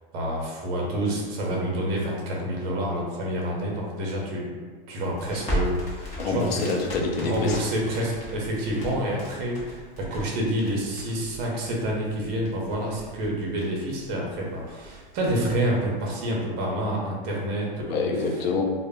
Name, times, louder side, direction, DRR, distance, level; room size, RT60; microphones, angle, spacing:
voice 1, 0.1-4.5 4.9-6.6 7.2-18.1, right 1 dB, 30° right, -2 dB, 0.6 m, -28 dB
Crackle, 5.1-15.7, equal, 20° left, 0.7 m, -37 dB
voice 2, 6.2-7.7 17.9-18.6, left 4 dB, 80° left, 2 dB, 0.5 m, -26 dB
2.1 x 2.0 x 3.4 m, 1.5 s
supercardioid pair, 145°, 30 cm